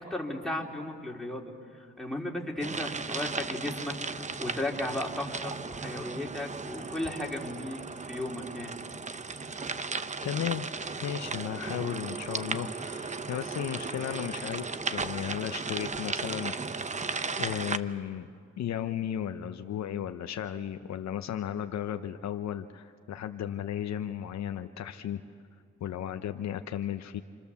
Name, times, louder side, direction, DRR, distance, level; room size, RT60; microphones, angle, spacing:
voice 1, 0.0-8.8, left 1 dB, ahead, -1 dB, 3.6 m, -35 dB
sound 1, 2.6-17.8, right 4 dB, 25° right, 0.9 m, -36 dB
voice 2, 10.2-10.7 11.0-17.0 17.4-18.3 18.6-25.2 25.8-27.2, left 10 dB, 65° left, 8 dB, 0.9 m, -35 dB
28.0 x 27.5 x 7.1 m, 2.2 s
cardioid pair, 90°, 30 cm